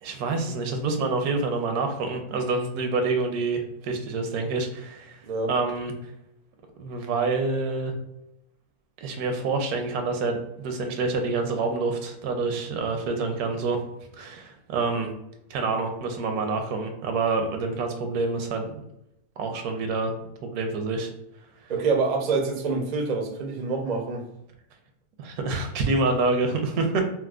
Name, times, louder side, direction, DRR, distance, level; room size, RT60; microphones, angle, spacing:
voice 1, 0.0-5.2 5.5-5.9 6.8-7.9 9.0-13.8 14.1-15.1 15.5-18.8 19.4-20.1 20.4-21.1 25.2-27.1, right 3 dB, 85° right, 5 dB, 1.1 m, -27 dB
voice 2, 21.7-24.2, right 4 dB, 70° right, 2 dB, 0.4 m, -26 dB
4.4 x 2.0 x 2.3 m, 0.83 s
omnidirectional pair, 1.6 m